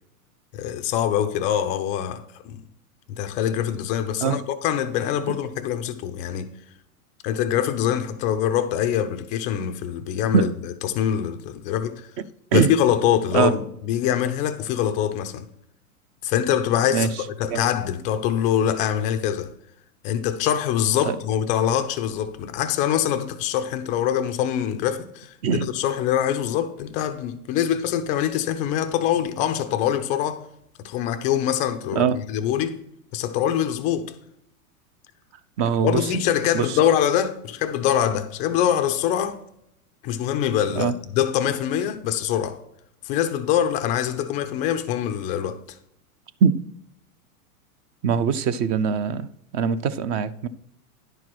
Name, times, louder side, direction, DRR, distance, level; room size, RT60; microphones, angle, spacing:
voice 1, 0.5-2.6 3.1-6.5 7.2-10.5 10.8-12.1 12.5-15.5 16.2-19.5 20.0-25.3 25.6-30.4 30.8-32.8 33.1-34.1 35.8-39.4 40.0-42.6 43.0-45.6, left 10 dB, 20° left, 0.3 m, -24 dB
voice 2, 35.6-36.1 36.5-36.8 40.8-40.9 46.4-46.6 48.0-49.3 49.5-50.5, right 6 dB, 35° right, 0.5 m, -22 dB
10.5 x 4.6 x 6.0 m
hypercardioid pair, 125°, 45 cm